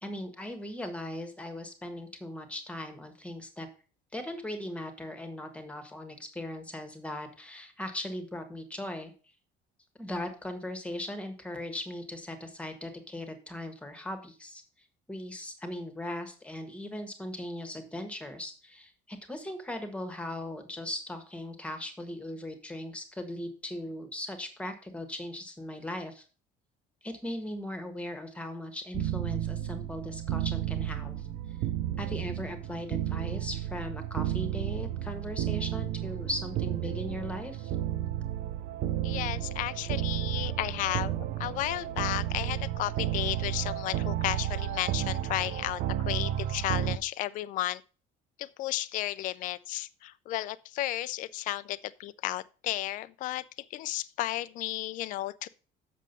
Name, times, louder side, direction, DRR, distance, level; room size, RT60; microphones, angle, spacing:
voice 1, 0.0-3.7 4.1-9.1 10.0-14.6 15.1-26.2 27.0-31.3 32.0-37.7, left 1 dB, 5° left, 1.4 m, -38 dB
sound 1, 28.9-47.0, right 12 dB, 55° right, 0.6 m, -32 dB
voice 2, 39.0-41.1 41.4-47.8 48.4-53.4 53.7-55.5, left 15 dB, 50° left, 0.4 m, -33 dB
7.5 x 6.3 x 5.3 m
cardioid pair, 160°, 18 cm